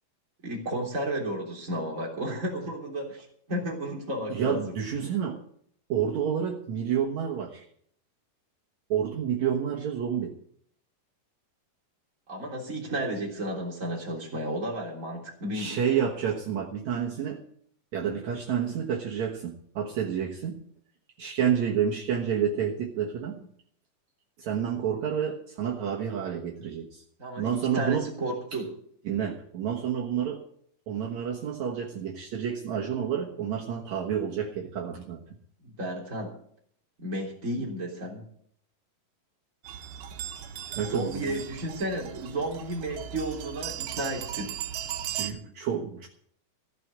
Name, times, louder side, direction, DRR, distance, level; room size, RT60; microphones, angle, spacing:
voice 1, 0.4-4.7 12.3-15.8 27.2-28.7 35.6-36.3 37.0-38.2 40.8-44.5, right 1 dB, 25° right, -1 dB, 3.4 m, -33 dB
voice 2, 4.3-5.4 5.9-7.6 8.9-10.4 15.5-17.4 17.9-20.6 21.2-23.4 24.4-27.0 27.4-28.1 29.1-30.4 30.9-35.2 37.6-37.7 40.8-41.4 45.2-46.1, right 8 dB, 65° right, -1 dB, 2.5 m, -29 dB
sound 1, 39.7-45.3, right 10 dB, 85° right, 2.7 m, -37 dB
15.5 x 6.2 x 9.4 m, 0.64 s
omnidirectional pair, 3.8 m